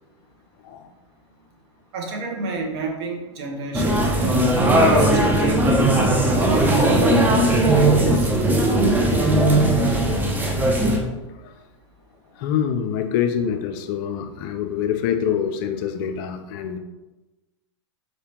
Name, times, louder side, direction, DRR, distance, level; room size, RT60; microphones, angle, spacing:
voice 1, 1.9-5.7 6.3-7.4 7.8-8.3, right 2 dB, 55° right, 1 dB, 1.1 m, -30 dB
sound 1, 3.7-11.0, right 1 dB, 10° right, 0.6 m, -18 dB
voice 2, 10.2-11.0 11.4-11.5 12.4-16.8, left 8 dB, 45° left, 8 dB, 0.4 m, -26 dB
4.5 x 3.3 x 2.9 m, 1.1 s
hypercardioid pair, 105°, 16 cm